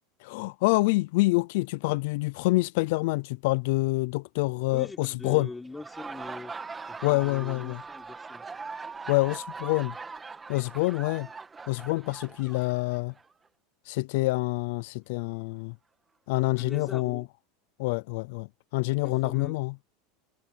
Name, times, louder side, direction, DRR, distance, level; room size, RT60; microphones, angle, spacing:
voice 1, 0.2-5.5 7.0-7.8 9.1-9.9 10.5-11.3 11.7-13.1 13.9-15.7 16.3-17.2 17.8-18.5 18.7-19.7, left 23 dB, 65° left, 0.4 m, -26 dB
voice 2, 4.7-6.5 6.9-8.4 16.6-17.3 19.0-19.5, left 3 dB, 10° left, 4.9 m, -42 dB
Laughter, 5.6-13.3, right 4 dB, 15° right, 1.8 m, -41 dB
supercardioid pair, 145°, 0 cm